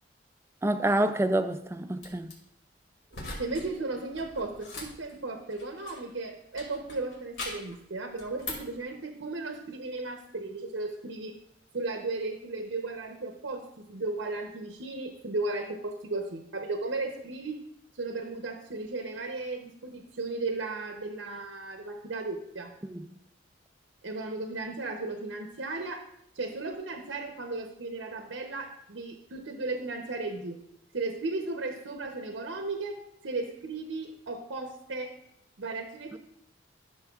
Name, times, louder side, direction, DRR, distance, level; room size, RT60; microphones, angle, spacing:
voice 1, 0.6-2.3 22.8-23.0, right 1 dB, 15° right, 10 dB, 0.3 m, -27 dB
sound 1, 2.0-2.3 3.1-3.7 4.0-6.1 6.6-7.7 8.2-8.8, left 2 dB, 70° left, 2.4 m, -41 dB
voice 2, 3.4-11.4 11.7-17.6 18.0-22.7 24.0-26.1 26.3-30.6 30.9-33.0 33.2-35.1 35.6-36.2, right 3 dB, 85° right, 4 dB, 0.8 m, -35 dB
13.0 x 6.5 x 2.4 m, 0.79 s
head